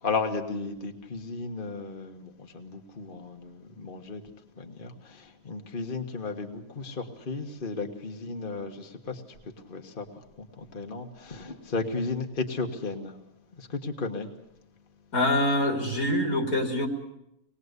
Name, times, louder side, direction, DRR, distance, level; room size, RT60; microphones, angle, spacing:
voice 1, 0.0-4.2 4.6-9.2 9.7-10.0 10.4-13.1 13.6-14.3, left 3 dB, 35° left, 4 dB, 1.7 m, -34 dB
voice 2, 15.1-16.9, left 1 dB, 80° left, 3 dB, 3.8 m, -25 dB
26.0 x 20.0 x 8.2 m, 0.82 s
omnidirectional pair, 1.5 m